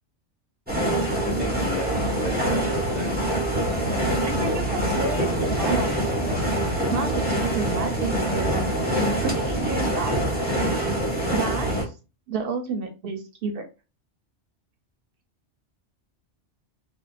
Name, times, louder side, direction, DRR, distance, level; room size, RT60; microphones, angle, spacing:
sound 1, 0.7-11.9, right 1 dB, 10° right, 0.8 m, -25 dB
voice 1, 1.2-3.2 4.3-4.6 8.1-8.5, left 3 dB, 60° left, 0 dB, 0.5 m, -33 dB
voice 2, 2.4-2.8 4.2-5.9 6.9-8.6 9.2-10.1 11.3-11.7 12.3-13.6, right 5 dB, 60° right, 5 dB, 0.7 m, -30 dB
sound 2, 3.6-10.2, left 1 dB, 80° left, 1.1 m, -34 dB
2.7 x 2.1 x 2.3 m, 0.30 s
omnidirectional pair, 1.2 m